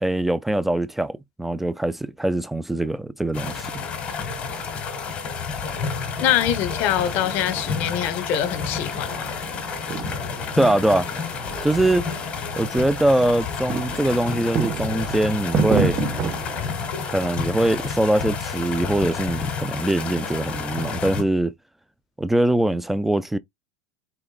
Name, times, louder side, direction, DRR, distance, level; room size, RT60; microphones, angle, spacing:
voice 1, 0.0-3.7 10.6-11.1 11.6-12.1 12.6-16.0 17.1-21.5 22.2-23.4, right 1 dB, 5° right, 0.3 m, -22 dB
sound 1, 3.3-21.2, left 5 dB, 35° left, 1.6 m, -30 dB
voice 2, 6.2-9.3, left 11 dB, 55° left, 1.1 m, -24 dB
sound 2, 7.0-16.7, right 7 dB, 30° right, 1.1 m, -31 dB
4.9 x 4.0 x 2.3 m
supercardioid pair, 105°, 4 cm